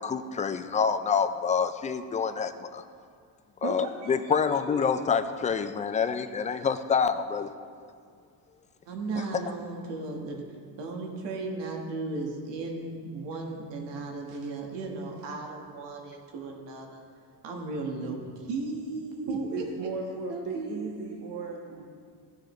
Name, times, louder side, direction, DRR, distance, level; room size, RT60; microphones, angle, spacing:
voice 1, 0.0-2.8 3.6-7.5, left 6 dB, 20° left, 10 dB, 0.3 m, -27 dB
voice 2, 3.6-4.6 4.8-5.0 19.3-21.8, right 4 dB, 70° right, 1 dB, 1.0 m, -36 dB
voice 3, 8.9-10.4 10.8-17.0 17.4-19.6 20.3-20.8, right 3 dB, 85° right, 1 dB, 1.6 m, -35 dB
15.0 x 6.4 x 3.2 m, 2.2 s
cardioid pair, 120°, 42 cm